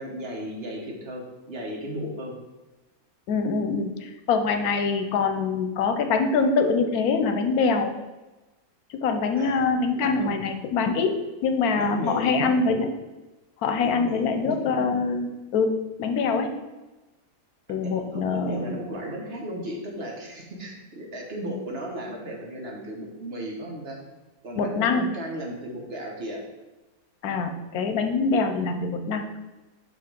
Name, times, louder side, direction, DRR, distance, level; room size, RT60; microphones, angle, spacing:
voice 1, 0.0-2.4 9.4-9.7 10.2-10.4 11.8-12.6 13.8-14.4 17.7-24.0 24.4-26.4, equal, 45° right, -1 dB, 1.2 m, -35 dB
voice 2, 3.3-7.9 8.9-11.2 11.4-12.9 13.6-16.5 17.7-18.8 24.6-25.1 27.2-29.2, left 4 dB, 85° left, 6 dB, 1.2 m, -24 dB
7.3 x 2.9 x 5.2 m, 1.1 s
omnidirectional pair, 1.5 m